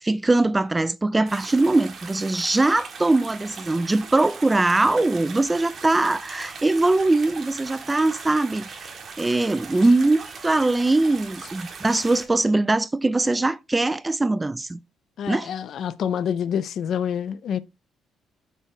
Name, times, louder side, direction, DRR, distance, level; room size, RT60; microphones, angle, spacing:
voice 1, 0.0-8.9 9.2-14.8 15.3-15.5, right 2 dB, 15° right, 0.3 m, -21 dB
sound 1, 1.3-12.3, right 5 dB, 40° right, 1.8 m, -40 dB
voice 2, 15.2-17.6, left 8 dB, 55° left, 0.5 m, -27 dB
6.7 x 4.6 x 4.5 m
cardioid pair, 145°, 0 cm